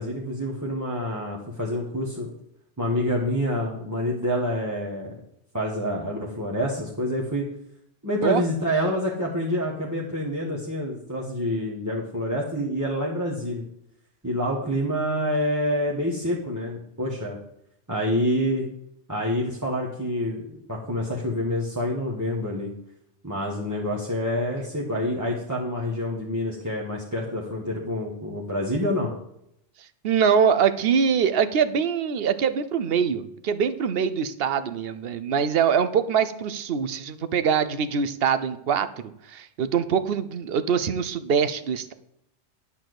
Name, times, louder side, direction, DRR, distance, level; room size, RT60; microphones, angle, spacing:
voice 1, 0.0-2.3 2.8-5.1 5.5-7.4 8.0-13.6 14.2-17.4 17.9-18.7 19.1-22.7 23.2-29.1, equal, 15° right, -5 dB, 1.3 m, -27 dB
voice 2, 30.0-38.9 39.3-41.9, right 7 dB, 60° right, 13 dB, 0.8 m, -23 dB
10.5 x 4.5 x 7.8 m, 0.77 s
omnidirectional pair, 1.3 m